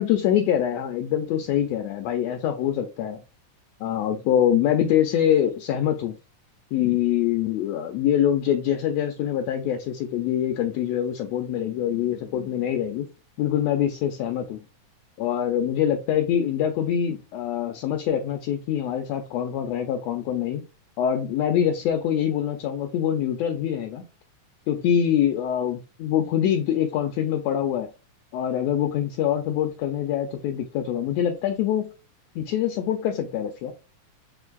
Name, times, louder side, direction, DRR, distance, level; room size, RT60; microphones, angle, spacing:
voice 1, 0.0-3.2 3.8-6.2 6.7-13.1 13.4-14.6 15.2-20.6 21.0-24.0 24.7-27.9 28.3-31.9 32.3-33.7, left 10 dB, 85° left, 1.5 m, -24 dB
7.0 x 2.5 x 2.3 m
omnidirectional pair, 3.6 m